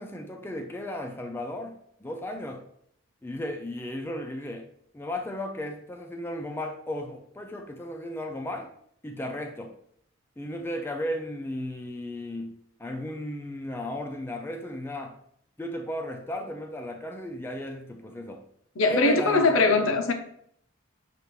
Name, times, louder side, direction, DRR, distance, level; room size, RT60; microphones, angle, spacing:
voice 1, 0.0-2.6 3.2-4.7 4.9-8.7 9.0-9.7 10.4-12.5 12.8-15.2 15.6-18.4 18.9-19.9, left 1 dB, 10° left, 0.4 m, -35 dB
voice 2, 18.8-20.1, left 3 dB, 85° left, 0.7 m, -21 dB
6.6 x 2.5 x 3.1 m
head